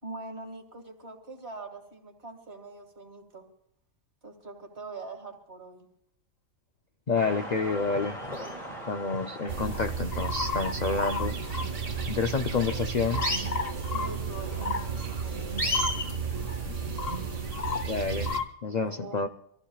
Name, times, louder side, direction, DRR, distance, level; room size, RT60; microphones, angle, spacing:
voice 1, 0.0-3.5 4.2-5.9 13.1-13.4 13.9-15.8 18.7-19.3, right 3 dB, 45° right, 4 dB, 2.3 m, -43 dB
voice 2, 7.1-8.2 8.9-11.4 12.1-13.2 16.7-17.2 17.9-18.3 18.6-19.3, left 4 dB, 65° left, 6 dB, 0.4 m, -29 dB
sound 1, 7.2-16.1, equal, 30° left, 4.0 m, -36 dB
sound 2, 9.5-18.4, right 6 dB, 65° right, 1.7 m, -33 dB
sound 3, 9.6-12.4 12.7-18.4, left 5 dB, 45° left, 1.1 m, -35 dB
26.0 x 15.0 x 2.4 m, 0.77 s
omnidirectional pair, 1.5 m